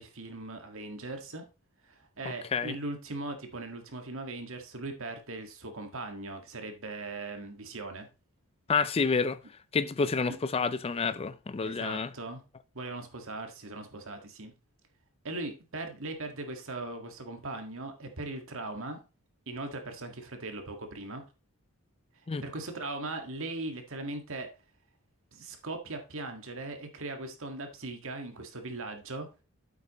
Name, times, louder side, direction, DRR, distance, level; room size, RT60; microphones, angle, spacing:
voice 1, 0.0-1.4 1.8-8.1 10.3-10.4 11.6-12.4 12.7-14.5 15.2-19.0 19.5-21.2 22.4-24.5 25.3-29.3, right 2 dB, 65° right, 1.8 m, -39 dB
voice 2, 2.2-2.8 8.7-9.4 9.7-12.1 22.3-22.4, left 4 dB, 25° left, 0.4 m, -29 dB
8.6 x 8.1 x 3.0 m
head